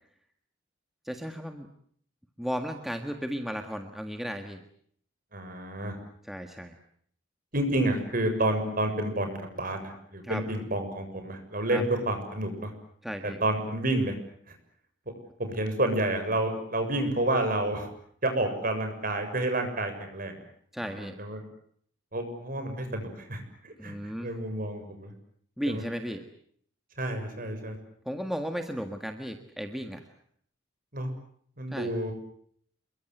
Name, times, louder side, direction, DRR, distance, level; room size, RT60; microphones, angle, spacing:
voice 1, 1.0-1.7 2.4-4.6 6.3-6.7 10.2-10.4 11.7-11.8 13.0-13.4 20.7-21.1 23.8-24.3 25.6-26.3 28.0-30.0 31.7-31.9, equal, ahead, 5 dB, 1.7 m, -34 dB
voice 2, 5.3-6.0 7.5-12.7 13.4-14.1 14.5-14.6 15.4-17.9 18.2-20.3 20.8-21.4 22.1-25.1 25.7-25.8 27.0-27.8 30.9-31.1 31.6-32.1, right 1 dB, 45° right, 6 dB, 7.0 m, -29 dB
28.0 x 23.0 x 8.0 m, 0.64 s
head